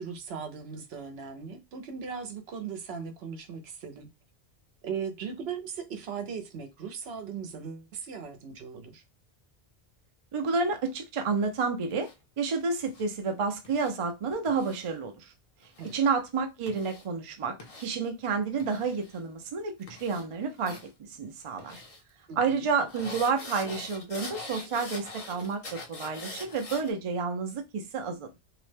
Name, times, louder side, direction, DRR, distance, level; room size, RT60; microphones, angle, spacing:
voice 1, 0.0-4.1 4.8-9.0 15.8-16.0 22.3-22.6, right 6 dB, 70° right, 0.8 m, -38 dB
voice 2, 10.3-12.1 12.4-15.3 15.9-19.7 20.0-20.8 21.2-21.8 22.4-28.4, right 5 dB, 50° right, 0.4 m, -30 dB
sound 1, 11.9-12.1 12.8-13.0 13.6-13.9 14.4-14.9 15.6-16.0 16.7-17.0 17.6-17.9 18.6-19.2 19.8-20.2 20.6-20.9 21.6-22.0 22.8-26.9, left 2 dB, 40° left, 0.6 m, -43 dB
2.8 x 2.1 x 3.2 m
omnidirectional pair, 1.1 m